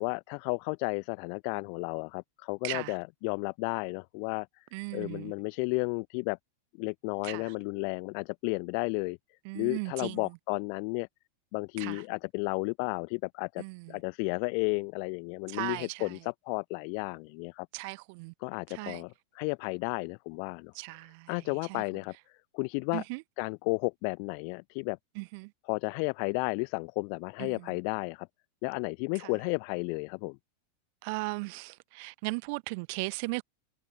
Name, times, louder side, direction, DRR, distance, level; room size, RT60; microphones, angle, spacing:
voice 1, 0.0-4.5 4.9-6.4 6.8-9.2 9.5-11.1 11.5-17.7 18.4-20.7 21.3-22.1 22.5-23.0 23.4-25.0 25.6-28.3 28.6-30.4, left 40 dB or more, 45° left, 0.6 m, -33 dB
voice 2, 4.7-5.3 7.2-7.4 9.5-10.2 11.8-12.0 13.6-13.8 15.5-15.9 17.7-18.3 18.7-19.0 20.8-21.2 21.7-21.8 22.9-23.2 25.2-25.5 31.0-33.4, right 31 dB, 45° right, 0.8 m, -36 dB
figure-of-eight pair, 90°, 0 cm